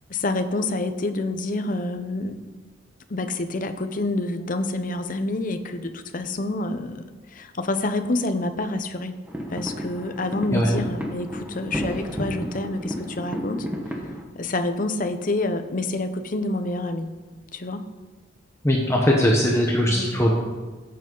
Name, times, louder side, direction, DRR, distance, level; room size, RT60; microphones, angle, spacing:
voice 1, 0.1-2.4 3.1-9.2 9.5-13.7 14.3-17.1 17.5-17.8 19.9-20.3, left 2 dB, 45° left, 8 dB, 0.7 m, -28 dB
sound 1, 9.3-14.2, equal, 10° right, 1.2 m, -32 dB
voice 2, 18.6-20.3, equal, 15° left, -1 dB, 1.0 m, -20 dB
15.0 x 7.7 x 3.9 m, 1.3 s
head